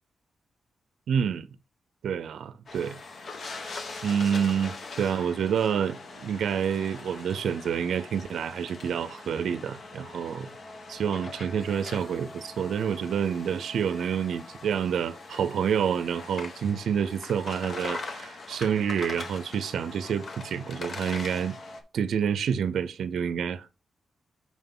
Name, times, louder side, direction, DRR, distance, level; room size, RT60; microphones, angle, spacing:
voice 1, 1.1-1.5 2.0-3.0 4.0-10.5 10.9-21.5 21.9-23.7, right 7 dB, 85° right, 0.5 m, -28 dB
sound 1, 2.7-21.8, left 3 dB, 60° left, 1.3 m, -41 dB
6.2 x 3.7 x 5.4 m
cardioid pair, 65°, 0 cm